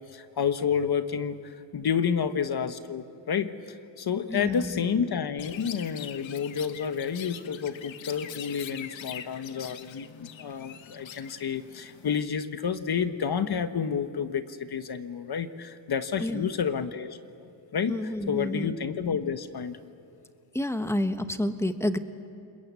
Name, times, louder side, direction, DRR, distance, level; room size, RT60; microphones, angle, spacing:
voice 1, 0.0-3.5 4.0-17.2 17.7-19.8, left 7 dB, 55° left, 10 dB, 1.3 m, -30 dB
voice 2, 4.3-4.9 16.2-16.5 17.9-18.7 20.5-22.0, left 1 dB, 5° left, 9 dB, 1.2 m, -29 dB
Chirp tweet, 5.4-12.2, left 9 dB, 80° left, 1.2 m, -43 dB
29.5 x 21.5 x 8.3 m, 2.5 s
cardioid pair, 100°, 46 cm